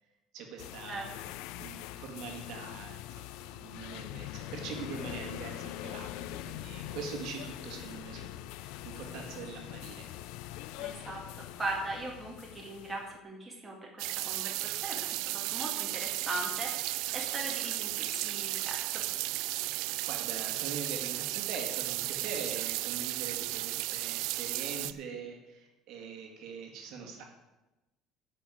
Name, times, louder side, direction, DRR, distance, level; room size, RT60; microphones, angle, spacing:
voice 1, 0.3-1.1 1.6-10.1 19.7-27.2, right 5 dB, 60° right, 2 dB, 1.9 m, -43 dB
sound 1, 0.6-13.2, left 14 dB, 80° left, 0.4 m, -43 dB
voice 2, 10.8-11.2 11.6-19.0, right 2 dB, 10° right, -2 dB, 2.2 m, -39 dB
sound 2, 14.0-24.9, right 20 dB, 75° right, 0.3 m, -34 dB
10.0 x 5.6 x 8.4 m, 1.0 s
cardioid pair, 160°, 0 cm